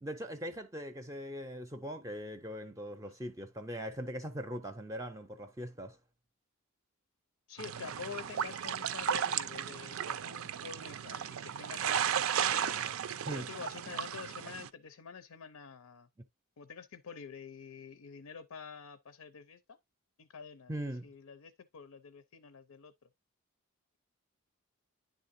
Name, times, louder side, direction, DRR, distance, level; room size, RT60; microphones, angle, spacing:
voice 1, 0.0-6.0 13.3-13.5 20.7-21.1, equal, 15° right, 0.5 m, -40 dB
voice 2, 7.5-12.8 13.3-16.1 16.6-19.8 20.2-20.7 21.0-22.9, left 6 dB, 85° left, 0.5 m, -48 dB
sound 1, 7.6-14.7, right 8 dB, 70° right, 0.4 m, -35 dB
10.5 x 3.7 x 2.5 m
head